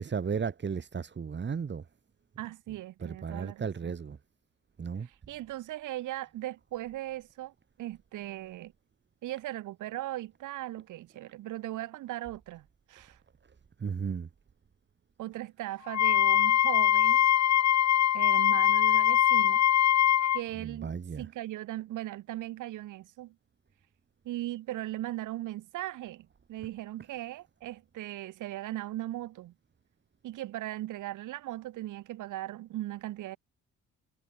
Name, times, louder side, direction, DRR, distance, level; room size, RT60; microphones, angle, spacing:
voice 1, 0.0-1.8 3.0-4.2 4.8-5.1 13.8-14.3 20.6-21.3, right 6 dB, 35° right, 2.3 m, -34 dB
voice 2, 2.4-3.9 5.0-7.5 7.8-8.7 9.2-13.2 15.2-17.3 18.1-19.6 20.3-23.3 24.2-29.5 30.2-33.4, right 15 dB, 80° right, 1.6 m, -38 dB
Wind instrument woodwind instrument, 15.9-20.4, left 11 dB, 60° left, 1.3 m, -23 dB
cardioid pair, 90°, 30 cm